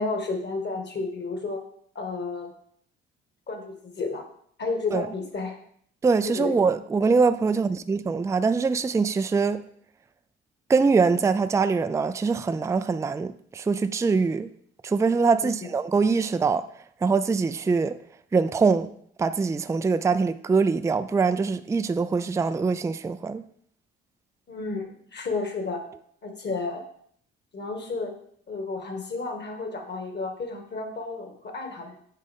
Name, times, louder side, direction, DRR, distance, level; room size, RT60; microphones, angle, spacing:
voice 1, 0.0-1.6 2.0-2.5 3.5-4.2 4.6-5.5 6.2-6.5 24.5-25.8 26.2-26.8 27.5-28.1 28.5-32.0, left 3 dB, 35° left, 2.0 m, -31 dB
voice 2, 6.0-9.6 10.7-14.5 14.8-16.7 17.0-18.0 18.3-18.9 19.2-23.4, right 4 dB, 10° right, 0.4 m, -23 dB
9.7 x 4.1 x 3.6 m
hypercardioid pair, 50°, 29 cm